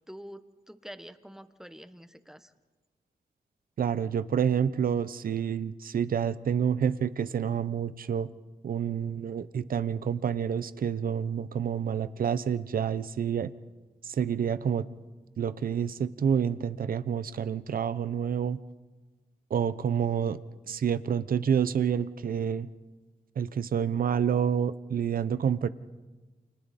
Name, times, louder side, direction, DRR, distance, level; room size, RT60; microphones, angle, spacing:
voice 1, 0.1-2.5, equal, 5° right, 10 dB, 1.0 m, -46 dB
voice 2, 3.8-8.3 8.6-13.5 14.0-14.9 15.4-18.6 19.5-20.4 20.7-22.7 23.4-25.7, right 8 dB, 65° right, 14 dB, 0.7 m, -28 dB
29.5 x 29.0 x 4.2 m, 1.3 s
wide cardioid pair, 165°, 16 cm